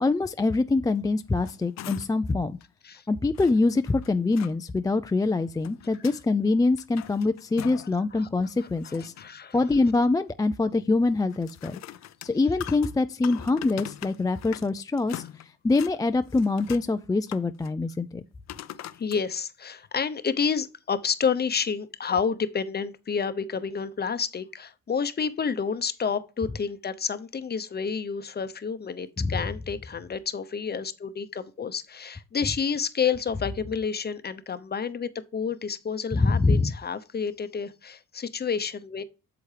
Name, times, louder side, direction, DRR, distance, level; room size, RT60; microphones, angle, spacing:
voice 1, 0.0-2.6 3.1-9.1 9.5-11.8 12.2-15.2 15.6-18.2 29.2-29.3 36.1-36.7, left 3 dB, 10° left, 0.3 m, -24 dB
sound 1, 1.2-2.3 2.6-2.7 3.3-4.5 5.3-6.2 6.6-8.0 8.4-9.4 11.3-14.7 15.0-16.0 16.3-16.9 17.3-17.7 18.5-19.2 19.8-19.9, left 12 dB, 65° left, 0.5 m, -42 dB
voice 2, 8.8-9.6 19.0-39.0, left 6 dB, 35° left, 0.8 m, -29 dB
8.3 x 6.9 x 3.3 m
cardioid pair, 90°, 30 cm